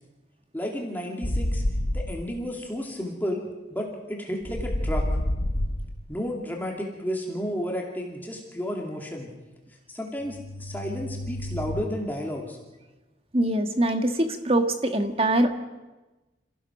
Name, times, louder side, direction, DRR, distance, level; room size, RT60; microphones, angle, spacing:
voice 1, 0.5-1.6 1.9-3.4 3.7-5.1 6.1-9.3 9.9-12.6, equal, 10° left, 0 dB, 2.4 m, -32 dB
sound 1, 1.2-2.2 4.4-6.0 10.2-11.8, left 1 dB, 60° left, 1.1 m, -29 dB
voice 2, 13.3-15.5, right 1 dB, 30° right, 7 dB, 1.6 m, -23 dB
28.0 x 15.5 x 6.0 m, 1.1 s
head